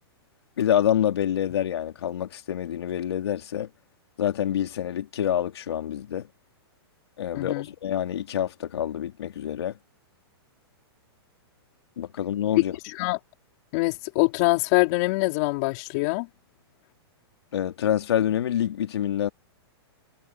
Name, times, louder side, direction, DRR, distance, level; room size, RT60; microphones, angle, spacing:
voice 1, 0.6-3.7 4.2-6.3 7.2-9.8 12.0-12.8 17.5-19.3, left 10 dB, 75° left, 3.5 m, -27 dB
voice 2, 7.3-7.7 12.5-12.6 13.0-13.2 13.7-16.3, left 25 dB, 35° left, 4.3 m, -24 dB
hypercardioid pair, 165°, 14 cm